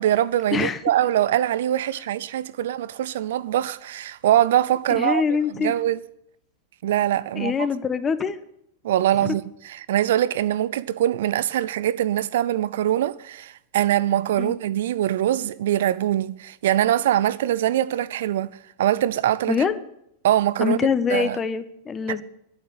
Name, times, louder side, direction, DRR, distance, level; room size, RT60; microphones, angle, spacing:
voice 1, 0.0-5.2 5.5-6.0 6.8-7.7 8.8-19.6 20.2-20.8 21.1-21.4 22.1-22.2, right 12 dB, 65° right, 0.6 m, -23 dB
voice 2, 4.9-5.7 7.4-8.4 9.2-9.3 14.4-14.5 19.5-19.8 20.6-22.2, left 6 dB, 25° left, 1.2 m, -24 dB
11.0 x 9.5 x 9.8 m
hypercardioid pair, 100°, 0 cm